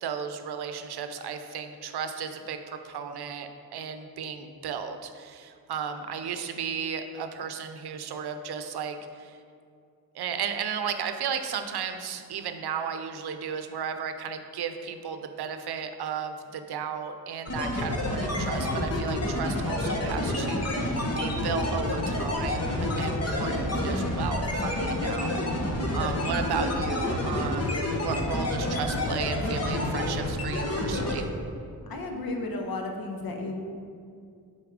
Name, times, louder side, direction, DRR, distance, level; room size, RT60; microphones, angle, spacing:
voice 1, 0.0-9.4 10.1-25.4 25.9-31.3, right 7 dB, 80° right, 7 dB, 0.6 m, -34 dB
sound 1, 17.5-31.2, left 1 dB, 40° left, 1.1 m, -28 dB
voice 2, 31.8-33.5, left 2 dB, 65° left, 2 dB, 1.0 m, -33 dB
6.6 x 4.2 x 5.0 m, 2.3 s
cardioid pair, 60°, 38 cm